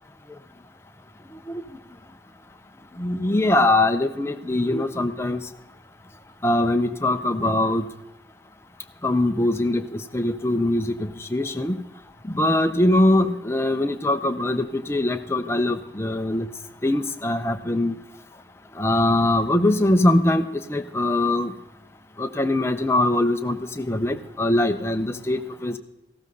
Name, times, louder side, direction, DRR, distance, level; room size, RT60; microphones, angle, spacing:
voice 1, 3.0-5.4 6.4-7.9 9.0-11.7 12.3-16.5 16.8-17.9 18.8-21.5 22.2-25.8, left 1 dB, 15° left, 6 dB, 0.6 m, -22 dB
14.5 x 13.0 x 3.9 m, 0.96 s
head